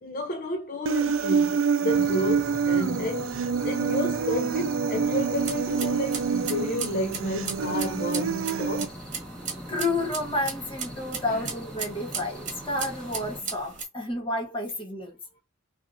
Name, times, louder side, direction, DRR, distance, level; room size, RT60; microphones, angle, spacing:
voice 1, 0.0-8.9 11.3-11.4, left 1 dB, 45° left, 0.5 m, -31 dB
Human voice, 0.9-8.8, right 6 dB, 70° right, 0.4 m, -26 dB
sound 1, 1.9-13.4, equal, 5° left, 1.5 m, -42 dB
sound 2, 5.3-13.8, right 6 dB, 40° right, 1.5 m, -38 dB
voice 2, 9.7-15.1, left 2 dB, 25° left, 1.5 m, -30 dB
5.5 x 2.4 x 2.6 m
head